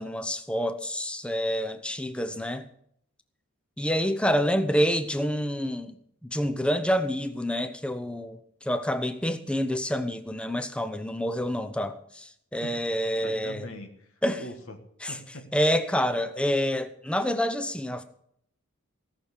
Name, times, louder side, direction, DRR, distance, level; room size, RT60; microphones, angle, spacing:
voice 1, 0.0-2.7 3.8-6.0 6.2-13.6 14.2-14.4 15.0-15.2 15.5-18.0, equal, 5° left, 10 dB, 0.7 m, -27 dB
voice 2, 13.2-14.8 15.1-15.5, left 1 dB, 70° left, 4 dB, 1.7 m, -42 dB
17.5 x 6.5 x 8.2 m, 0.70 s
head